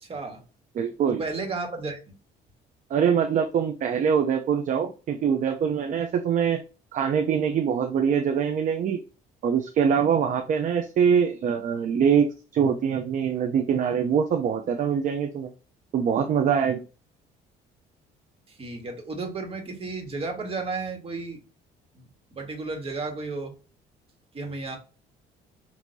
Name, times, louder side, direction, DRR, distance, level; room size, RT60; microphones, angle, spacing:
voice 1, 0.0-0.4 1.2-2.1 18.5-21.4 21.9-23.5 24.3-24.8, right 3 dB, 35° right, 2 dB, 1.7 m, -33 dB
voice 2, 0.8-1.2 2.9-6.6 6.9-9.0 9.4-12.3 12.5-15.5 15.9-16.8, right 7 dB, 50° right, 5 dB, 0.6 m, -23 dB
6.1 x 2.8 x 2.6 m, 0.34 s
cardioid pair, 110°, 17 cm